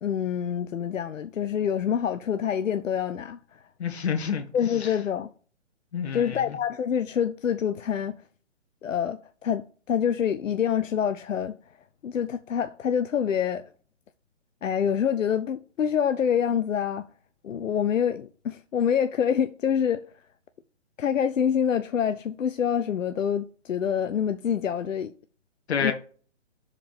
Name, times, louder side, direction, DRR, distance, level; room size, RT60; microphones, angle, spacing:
voice 1, 0.0-3.4 4.5-5.3 6.1-8.1 8.8-11.6 12.0-13.6 14.6-17.1 17.4-20.1 21.0-25.1 25.8-25.9, left 8 dB, 85° left, 0.6 m, -26 dB
voice 2, 3.8-4.4 4.8-4.9 5.9-6.4 25.7-25.9, left 7 dB, 55° left, 1.7 m, -28 dB
6.0 x 4.9 x 4.9 m
hypercardioid pair, 140°, 37 cm